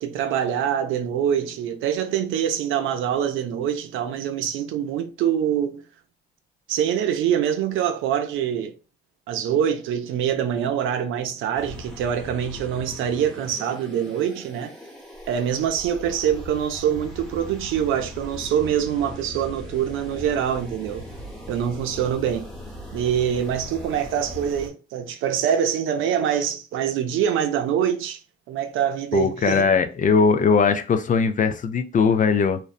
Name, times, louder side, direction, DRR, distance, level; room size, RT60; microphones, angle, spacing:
voice 1, 0.0-5.8 6.7-8.7 9.3-14.7 15.3-21.1 21.5-22.5 22.9-28.2 28.5-29.7, right 9 dB, 85° right, 0.5 m, -24 dB
sound 1, 11.6-24.7, equal, ahead, 1.0 m, -39 dB
voice 2, 29.1-32.6, left 5 dB, 40° left, 0.4 m, -20 dB
2.6 x 2.1 x 2.4 m
cardioid pair, 90°, 20 cm